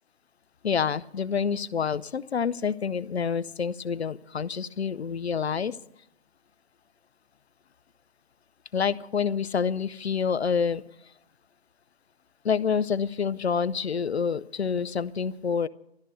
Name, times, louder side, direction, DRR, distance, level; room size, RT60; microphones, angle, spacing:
voice 1, 0.6-5.8 8.7-11.1 12.4-15.7, left 6 dB, 75° left, 15 dB, 0.7 m, -27 dB
13.0 x 12.5 x 6.7 m, 0.79 s
hypercardioid pair, 170°, 33 cm